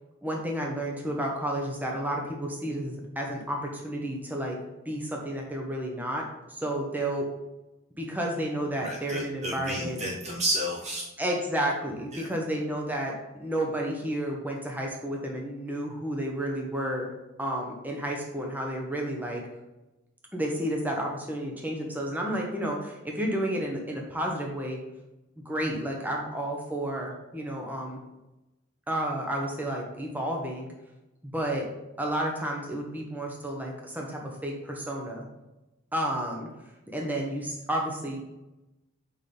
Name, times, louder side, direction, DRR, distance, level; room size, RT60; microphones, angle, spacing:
voice 1, 0.2-4.6 4.8-7.3 8.0-10.0 11.2-17.1 17.4-19.5 20.3-24.8 25.4-28.0 28.9-30.7 31.2-31.6 32.0-35.2 35.9-36.5 36.9-38.2, right 1 dB, 10° right, 0 dB, 1.0 m, -31 dB
voice 2, 8.8-11.1 12.1-12.3, right 1 dB, 30° right, -2 dB, 0.7 m, -31 dB
6.5 x 5.3 x 3.4 m, 0.99 s
head